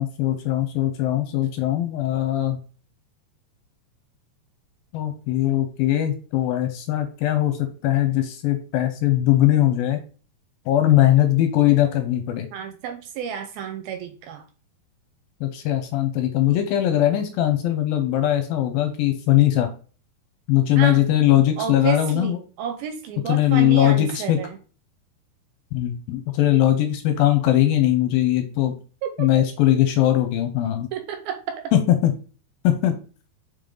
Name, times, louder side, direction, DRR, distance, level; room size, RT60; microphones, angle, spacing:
voice 1, 0.0-2.6 4.9-10.0 10.7-12.5 15.4-19.7 20.5-22.4 23.3-24.4 25.7-28.7 29.2-30.9 31.7-32.1 32.6-32.9, left 13 dB, 75° left, 7 dB, 2.3 m, -20 dB
voice 2, 12.5-14.4 20.8-21.1 21.6-24.6 29.0-29.3 30.9-31.7, right 8 dB, 80° right, 7 dB, 2.3 m, -31 dB
5.5 x 5.2 x 3.8 m, 0.37 s
omnidirectional pair, 4.7 m